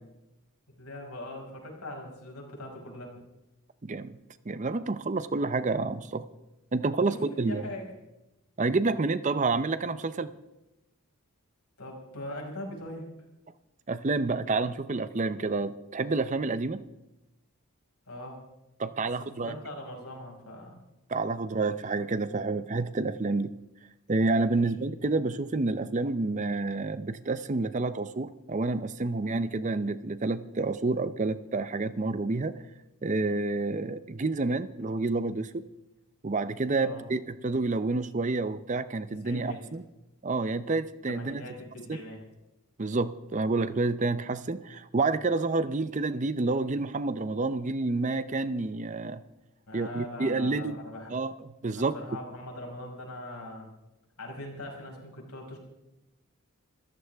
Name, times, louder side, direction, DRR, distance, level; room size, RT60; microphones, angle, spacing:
voice 1, 0.8-3.2 7.3-7.9 11.8-13.1 18.1-18.4 19.2-20.8 24.5-24.6 36.8-37.0 39.2-39.6 41.1-42.2 49.7-51.1 51.7-53.7 54.2-55.6, left 1 dB, 85° left, 0 dB, 5.4 m, -41 dB
voice 2, 3.8-4.2 4.5-6.3 6.7-7.7 8.6-10.3 13.9-16.8 18.8-19.5 21.1-23.5 24.1-32.6 33.0-35.6 36.2-39.8 40.2-41.4 41.9-42.0 42.8-49.2 49.7-50.8 51.1-51.9, right 3 dB, 35° right, 13 dB, 0.6 m, -29 dB
25.5 x 14.5 x 3.5 m, 0.95 s
head